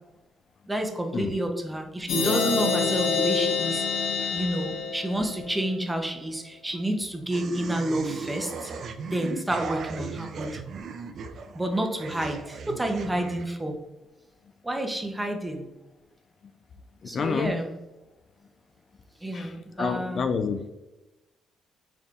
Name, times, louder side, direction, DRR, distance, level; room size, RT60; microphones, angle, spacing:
voice 1, 0.7-3.8 4.3-8.7 9.0-10.6 11.5-13.7 14.6-15.7 17.1-17.7 19.2-20.3, right 1 dB, 10° right, 0.7 m, -29 dB
sound 1, 2.1-5.7, left 4 dB, 75° left, 0.9 m, -26 dB
sound 2, 7.3-13.4, right 5 dB, 60° right, 0.4 m, -37 dB
voice 2, 17.1-17.5 19.3-19.5 19.8-20.7, left 5 dB, 50° left, 0.3 m, -28 dB
4.2 x 3.5 x 2.5 m
cardioid pair, 90°, 0 cm